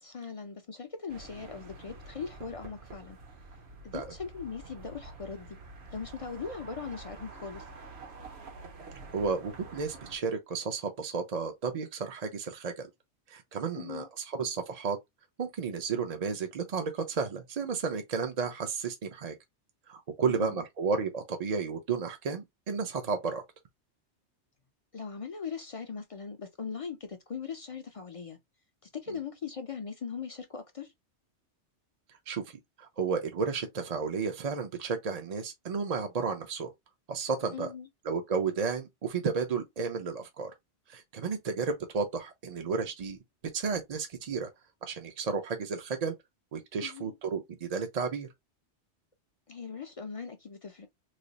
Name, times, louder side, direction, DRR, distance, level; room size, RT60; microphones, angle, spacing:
voice 1, 0.0-3.2 3.8-5.6 5.9-7.6 13.8-14.1 20.3-20.6 24.9-28.4 28.8-30.9 37.5-37.9 46.8-47.2 49.5-50.9, left 6 dB, 45° left, 0.4 m, -40 dB
sound 1, 1.1-10.2, right 3 dB, 65° right, 1.0 m, -48 dB
voice 2, 9.1-12.9 13.3-15.0 15.4-19.3 19.9-23.4 32.3-32.4 32.8-36.7 37.1-37.7 38.1-40.5 40.9-43.2 43.5-44.5 44.8-46.1 46.5-48.3, right 5 dB, 50° right, 0.5 m, -32 dB
3.3 x 2.3 x 3.9 m
omnidirectional pair, 1.2 m